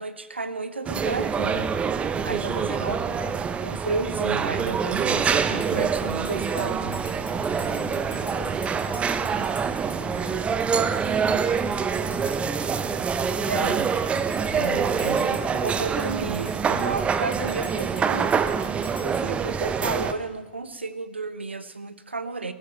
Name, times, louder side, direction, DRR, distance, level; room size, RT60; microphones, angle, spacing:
voice 1, 0.0-1.7 2.2-3.0 3.6-7.0 13.5-13.9 14.5-18.4 19.0-22.5, right 3 dB, 85° right, 12 dB, 1.0 m, -32 dB
sound 1, 0.9-20.1, right 6 dB, 20° right, 0.9 m, -25 dB
voice 2, 2.8-3.4 7.6-9.6 9.9-12.9 13.4-13.8 15.1-15.5, left 3 dB, 25° left, -4 dB, 4.6 m, -42 dB
sound 2, 4.5-15.1, left 1 dB, 5° left, 7.8 m, -49 dB
sound 3, 4.7-19.2, left 4 dB, 80° left, 2.8 m, -47 dB
17.0 x 14.5 x 5.7 m, 1.1 s
figure-of-eight pair, 100°, 6 cm